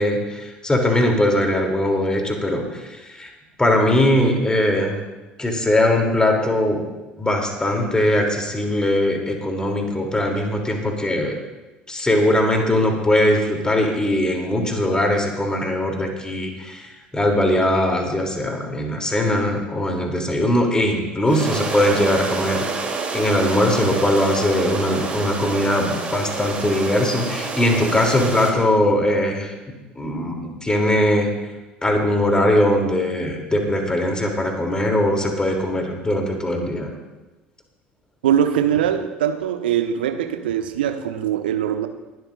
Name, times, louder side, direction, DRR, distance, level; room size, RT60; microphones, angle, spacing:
voice 1, 0.0-3.3 3.6-5.0 5.4-6.8 7.2-11.3 11.9-22.6 23.1-29.5 29.9-31.3 31.8-36.9, left 1 dB, 15° left, 2 dB, 3.1 m, -20 dB
sound 1, 21.3-28.5, right 4 dB, 25° right, 3.3 m, -28 dB
voice 2, 38.2-41.9, right 9 dB, 70° right, 7 dB, 1.0 m, -22 dB
22.0 x 12.5 x 2.6 m, 1.1 s
figure-of-eight pair, 60°, 6 cm